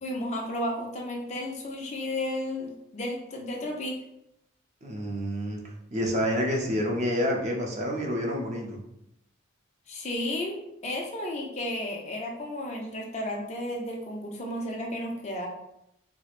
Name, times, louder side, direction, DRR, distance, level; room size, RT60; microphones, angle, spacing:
voice 1, 0.0-4.0 9.9-15.5, left 1 dB, 30° left, -1 dB, 0.5 m, -33 dB
voice 2, 4.8-5.6 5.9-8.8, equal, 35° right, 0 dB, 0.5 m, -28 dB
4.4 x 2.1 x 2.4 m, 0.81 s
head